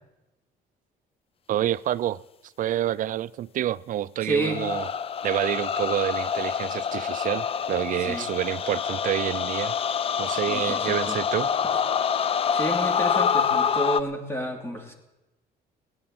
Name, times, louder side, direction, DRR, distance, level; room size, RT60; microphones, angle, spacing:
voice 1, 1.5-2.2 2.6-4.9 5.2-9.7 10.2-11.5, right 12 dB, 50° right, 0.4 m, -28 dB
voice 2, 4.2-4.6 8.1-8.3 10.5-11.2 12.5-14.9, right 1 dB, 15° left, 2.8 m, -30 dB
sound 1, 4.4-14.0, left 7 dB, 35° left, 0.5 m, -26 dB
16.0 x 10.5 x 7.8 m
cardioid pair, 110°, 17 cm